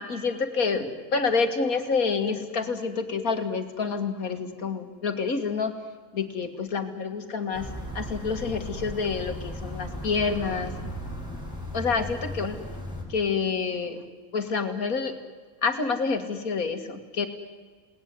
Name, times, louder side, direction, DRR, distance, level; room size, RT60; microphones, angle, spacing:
voice 1, 0.0-5.7 6.1-7.7 7.9-10.8 11.7-12.6 13.1-14.0 14.3-15.2 15.6-17.3, left 5 dB, 75° left, 7 dB, 2.4 m, -28 dB
sound 1, 7.5-13.0, equal, 15° left, 7.2 m, -36 dB
28.5 x 19.0 x 9.8 m, 1.5 s
omnidirectional pair, 1.5 m